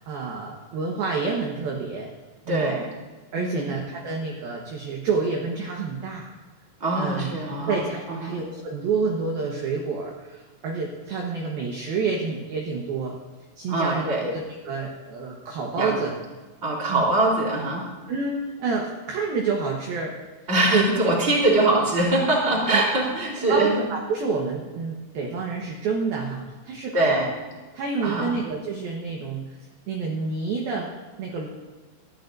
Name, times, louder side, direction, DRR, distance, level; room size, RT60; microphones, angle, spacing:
voice 1, 0.0-2.1 2.5-2.7 3.3-6.3 7.0-7.3 7.7-13.2 13.6-16.1 16.9-17.0 18.1-20.2 20.7-21.1 22.7-22.8 23.5-27.2 27.7-29.4 29.9-30.9 31.2-31.5, right 4 dB, 65° right, -1 dB, 2.6 m, -28 dB
voice 2, 2.5-2.8 3.4-3.6 6.8-7.8 8.1-8.4 13.7-14.3 15.7-16.0 16.6-17.9 20.5-23.7 26.9-27.3 28.0-28.3, right 2 dB, 15° right, -3 dB, 3.2 m, -23 dB
23.5 x 14.0 x 2.7 m, 1.3 s
omnidirectional pair, 5.7 m